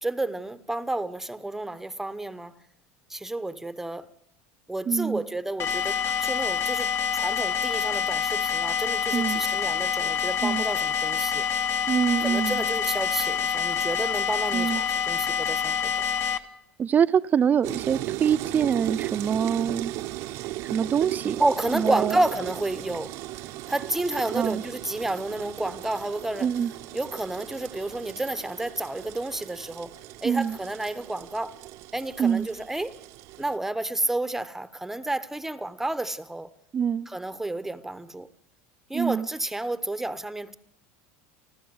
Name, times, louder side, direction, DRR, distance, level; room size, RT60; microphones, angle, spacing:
voice 1, 0.0-2.5 3.1-4.1 4.7-11.5 12.2-16.1 21.4-23.2 23.7-26.5 26.9-29.9 30.2-31.6 31.9-33.0 33.4-36.5 37.1-38.3 38.9-40.5, right 2 dB, 5° right, 1.0 m, -30 dB
voice 2, 4.9-5.3 9.1-9.4 10.4-10.6 11.9-12.6 14.5-14.8 16.8-19.9 20.7-21.4 21.7-22.2 24.3-24.6 26.4-26.7 30.2-30.6 32.2-32.5 36.7-37.1 38.9-39.3, right 8 dB, 30° right, 0.7 m, -25 dB
sound 1, 5.6-16.4, left 7 dB, 45° left, 1.4 m, -27 dB
sound 2, 17.6-33.6, right 16 dB, 60° right, 0.9 m, -37 dB
30.0 x 13.0 x 8.0 m
supercardioid pair, 120°, 6 cm